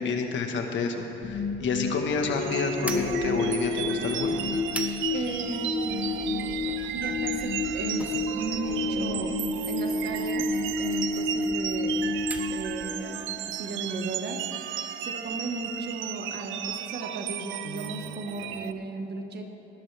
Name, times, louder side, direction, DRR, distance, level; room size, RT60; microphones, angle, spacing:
voice 1, 0.0-4.4, left 4 dB, 70° left, 3 dB, 1.5 m, -29 dB
sound 1, 1.2-13.4, left 3 dB, 40° left, 0.9 m, -30 dB
sound 2, 2.4-18.7, right 11 dB, 85° right, 0.5 m, -35 dB
sound 3, 2.8-13.1, right 1 dB, 5° right, 1.0 m, -45 dB
voice 2, 5.1-6.4 6.9-10.5 10.8-12.0 12.5-13.3 13.6-19.5, right 3 dB, 55° right, 4 dB, 1.6 m, -36 dB
20.0 x 11.0 x 3.5 m, 2.9 s
cardioid pair, 90°, 20 cm